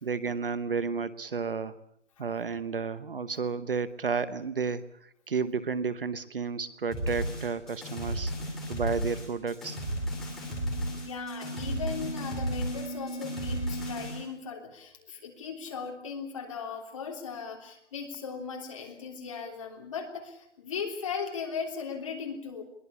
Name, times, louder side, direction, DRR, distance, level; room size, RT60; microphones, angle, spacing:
voice 1, 0.0-1.8 2.2-8.3 8.7-9.8, right 5 dB, 50° right, 15 dB, 1.1 m, -32 dB
sound 1, 6.9-14.2, equal, ahead, 2.6 m, -34 dB
sound 2, 9.6-14.0, equal, 40° left, 5.4 m, -40 dB
voice 2, 11.0-22.6, left 6 dB, 25° left, 1 dB, 3.4 m, -38 dB
23.0 x 18.0 x 8.3 m, 0.70 s
hypercardioid pair, 180°, 36 cm